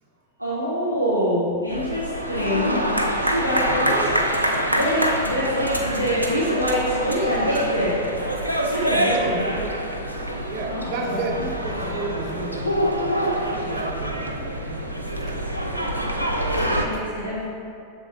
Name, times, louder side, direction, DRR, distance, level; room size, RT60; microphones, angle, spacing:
voice 1, 0.4-4.0 4.7-8.0 8.6-9.4 10.7-11.2 11.8-12.0 16.8-17.4, equal, 90° left, -9 dB, 1.0 m, -25 dB
sound 1, 1.7-16.8, right 1 dB, 90° right, 0.5 m, -25 dB
voice 2, 10.5-14.9 15.3-15.4 16.5-16.7, right 3 dB, 45° right, 2 dB, 0.7 m, -32 dB
6.7 x 3.9 x 3.9 m, 2.4 s
figure-of-eight pair, 90°, 0 cm